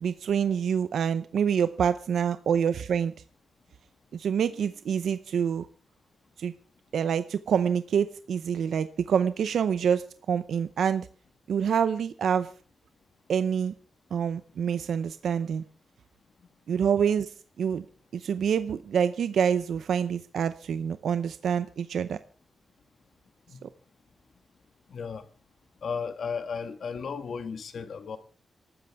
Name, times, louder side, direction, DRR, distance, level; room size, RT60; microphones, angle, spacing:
voice 1, 0.0-3.1 4.1-5.7 6.4-6.5 6.9-11.1 11.5-12.5 13.3-13.7 14.1-15.6 16.7-17.8 18.1-22.2 23.6-23.7, right 7 dB, 85° right, 0.6 m, -26 dB
voice 2, 24.9-25.3 25.8-28.2, left 6 dB, 60° left, 1.5 m, -34 dB
27.5 x 13.0 x 3.5 m
wide cardioid pair, 165°, 0 cm